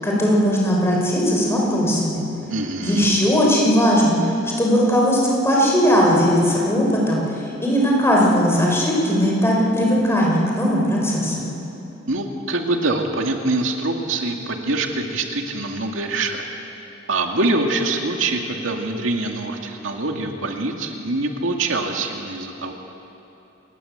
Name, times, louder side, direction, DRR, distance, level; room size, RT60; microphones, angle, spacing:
voice 1, 0.0-2.2 2.8-4.2 4.6-7.2 7.6-11.5, equal, 15° left, -3 dB, 6.2 m, -18 dB
voice 2, 2.5-3.1 12.1-16.5 17.1-22.7, right 2 dB, 85° right, 2 dB, 2.3 m, -24 dB
27.5 x 21.5 x 8.1 m, 3.0 s
head